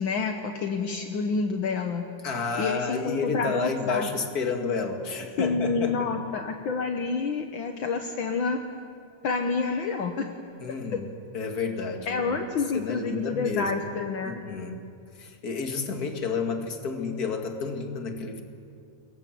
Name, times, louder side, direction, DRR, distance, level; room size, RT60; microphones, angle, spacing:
voice 1, 0.0-2.0 2.6-4.1 5.4-8.6 9.2-10.3 10.9-11.0 12.1-14.4, left 4 dB, 60° left, 4 dB, 1.3 m, -28 dB
voice 2, 2.2-6.1 10.6-11.1 11.3-13.7 14.2-14.8 15.2-18.4, left 4 dB, 35° left, 4 dB, 2.0 m, -30 dB
29.0 x 22.5 x 7.6 m, 2.5 s
omnidirectional pair, 3.7 m